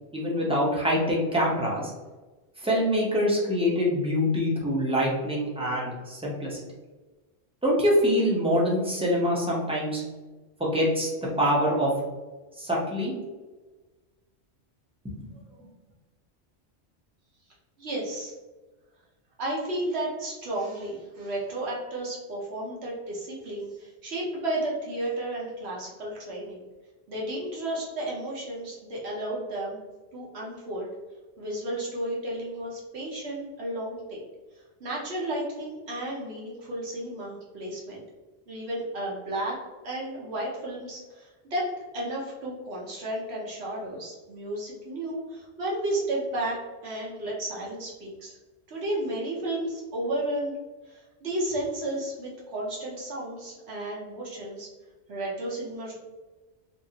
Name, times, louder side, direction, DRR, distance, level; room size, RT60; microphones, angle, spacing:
voice 1, 0.1-1.9 2.6-6.6 7.6-10.0 10.6-11.1 11.4-11.9 12.6-13.1 15.2-15.3, equal, 5° right, -5 dB, 0.6 m, -25 dB
voice 2, 17.8-18.3 19.4-26.7 27.1-29.8 30.1-30.9 31.4-34.2 34.8-38.0 38.5-39.6 39.8-48.4 48.7-50.6 50.9-54.7 55.1-55.9, right 1 dB, 70° right, -4 dB, 1.1 m, -33 dB
2.7 x 2.5 x 2.7 m, 1.2 s
omnidirectional pair, 1.2 m